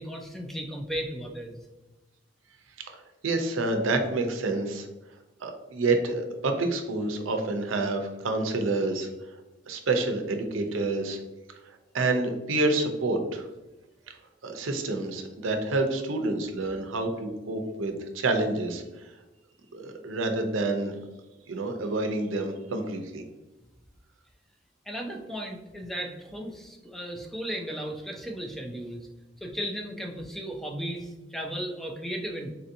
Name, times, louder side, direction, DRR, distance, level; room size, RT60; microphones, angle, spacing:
voice 1, 0.0-1.6 24.9-29.1 29.4-32.5, equal, ahead, 2 dB, 0.4 m, -35 dB
voice 2, 3.2-4.9 5.4-9.1 9.7-11.2 11.9-13.4 14.4-18.8 19.7-21.0 21.5-23.2, right 2 dB, 85° right, 5 dB, 0.6 m, -28 dB
4.1 x 2.7 x 2.5 m, 1.1 s
head